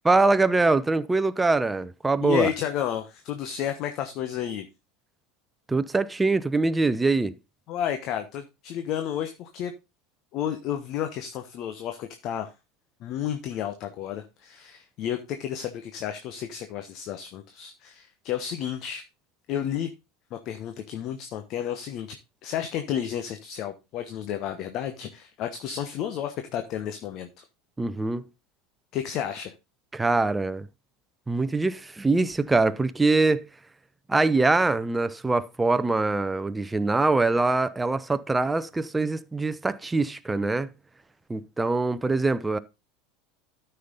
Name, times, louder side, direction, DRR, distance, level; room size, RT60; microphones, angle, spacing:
voice 1, 0.0-2.5 5.7-7.3 27.8-28.2 29.9-30.7 31.3-33.5 34.1-40.7 41.3-42.6, right 3 dB, 10° right, 0.7 m, -23 dB
voice 2, 2.2-4.7 7.7-9.7 10.3-12.5 13.0-19.0 19.5-19.9 20.3-27.4 28.9-29.5, left 10 dB, 45° left, 1.1 m, -31 dB
13.0 x 5.7 x 3.9 m
figure-of-eight pair, 75°, 0 cm